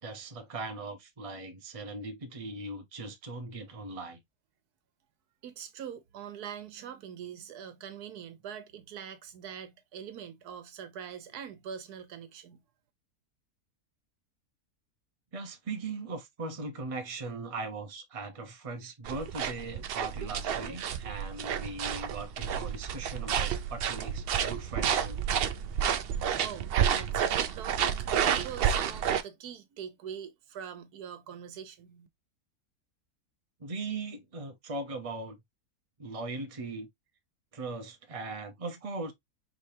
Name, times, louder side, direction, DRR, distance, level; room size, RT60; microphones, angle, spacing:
voice 1, 0.0-4.2 15.3-25.2 33.6-35.4 36.0-36.9 37.5-39.1, right 3 dB, 30° right, 0.8 m, -39 dB
voice 2, 5.4-12.6 25.5-25.9 26.3-32.1, right 8 dB, 90° right, 1.4 m, -43 dB
sound 1, 19.0-29.2, right 8 dB, 70° right, 0.5 m, -30 dB
5.0 x 3.3 x 2.7 m
omnidirectional pair, 1.6 m